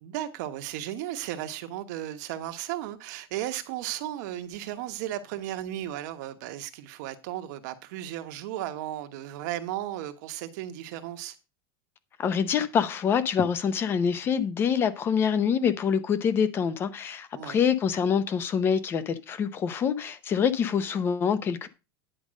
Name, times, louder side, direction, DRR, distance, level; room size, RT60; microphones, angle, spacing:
voice 1, 0.0-11.3 17.3-17.6, right 13 dB, 50° right, 1.2 m, -35 dB
voice 2, 12.2-21.7, left 7 dB, 20° left, 0.7 m, -25 dB
10.5 x 5.2 x 6.3 m
supercardioid pair, 175°, 13 cm